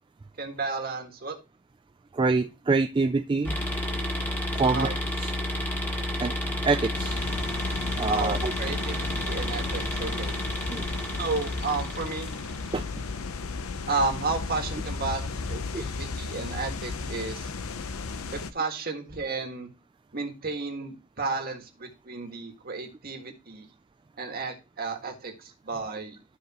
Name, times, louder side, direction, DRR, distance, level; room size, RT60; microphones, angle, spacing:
voice 1, 0.4-1.4 4.6-4.9 8.1-10.3 11.1-12.3 13.9-17.5 18.3-19.7 20.1-23.7 24.2-26.2, right 3 dB, 45° right, 4 dB, 1.7 m, -32 dB
voice 2, 2.1-3.6 4.5-5.3 6.2-6.3 6.6-7.2 8.0-8.5 10.7-10.9 12.7-12.8 15.7-15.8, right 3 dB, 20° right, 7 dB, 0.3 m, -26 dB
sound 1, 3.4-12.9, left 1 dB, 10° left, 1.8 m, -31 dB
sound 2, 6.9-18.5, left 4 dB, 85° left, 0.7 m, -35 dB
13.5 x 4.9 x 2.9 m, 0.28 s
head